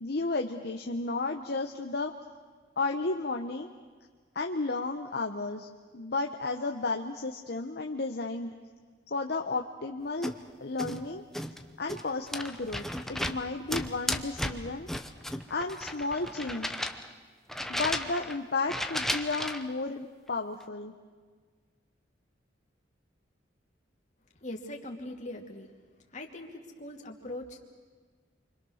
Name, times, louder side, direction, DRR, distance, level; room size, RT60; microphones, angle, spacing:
voice 1, 0.0-2.1 2.8-3.7 4.3-8.5 9.1-10.3 10.6-11.2 11.8-14.9 15.5-16.7 17.7-20.9, left 3 dB, 55° left, 3 dB, 1.0 m, -33 dB
sound 1, 10.2-10.4 10.8-11.1 11.3-13.4 13.7-17.1 17.5-18.4 18.7-19.7, left 1 dB, ahead, 0.9 m, -34 dB
voice 2, 24.4-25.7 26.1-27.6, left 1 dB, 40° left, 2 dB, 2.6 m, -41 dB
29.0 x 25.0 x 6.5 m, 1.5 s
head